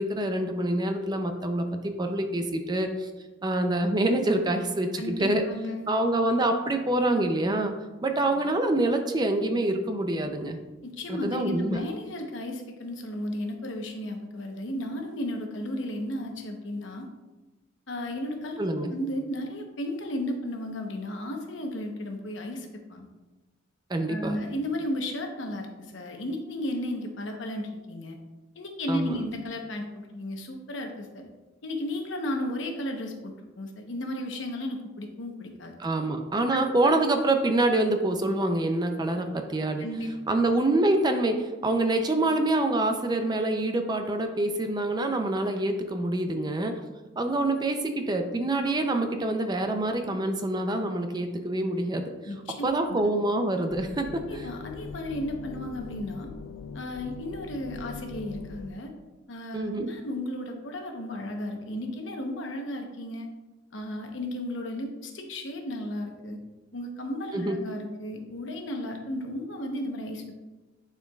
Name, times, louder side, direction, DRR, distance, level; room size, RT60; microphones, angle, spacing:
voice 1, 0.0-3.1 3.4-5.4 5.9-7.7 8.0-10.6 11.1-11.8 18.6-18.9 23.9-24.4 28.9-29.2 35.8-39.9 40.3-46.8 47.2-52.1 52.6-54.5 59.5-59.9 67.3-67.6, right 2 dB, 20° right, 6 dB, 0.5 m, -26 dB
voice 2, 4.9-5.9 10.8-17.1 17.9-23.1 24.1-28.2 28.5-31.3 31.6-35.7 36.5-36.9 39.8-40.1 52.3-53.0 54.3-56.3 56.7-58.9 59.3-63.3 63.7-66.4 66.7-70.4, left 1 dB, 65° left, 3 dB, 0.9 m, -34 dB
sound 1, 53.7-58.7, left 5 dB, 85° left, 0.4 m, -41 dB
10.0 x 4.5 x 2.3 m, 1.1 s
head